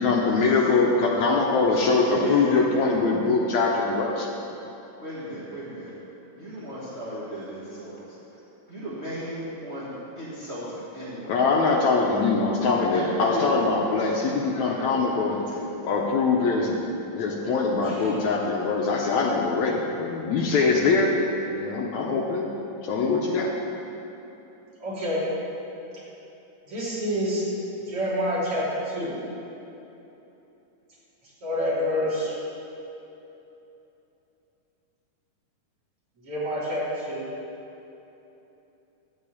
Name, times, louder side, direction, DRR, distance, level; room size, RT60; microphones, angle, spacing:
voice 1, 0.0-4.3 11.3-15.5 15.9-16.8 17.1-21.2 21.5-22.5 22.8-23.5, left 4 dB, 70° left, -1 dB, 2.0 m, -23 dB
voice 2, 1.9-2.5 5.0-5.9 6.4-7.9 8.7-9.9 10.2-10.6 10.9-11.3 12.9-13.4 14.7-14.9, right 1 dB, 30° right, -10 dB, 1.4 m, -34 dB
voice 3, 17.8-18.2 24.8-25.2 26.7-27.4 27.9-29.2 31.4-32.4 36.2-37.3, equal, 45° right, -9 dB, 3.7 m, -28 dB
13.0 x 4.7 x 8.4 m, 3.0 s
omnidirectional pair, 3.7 m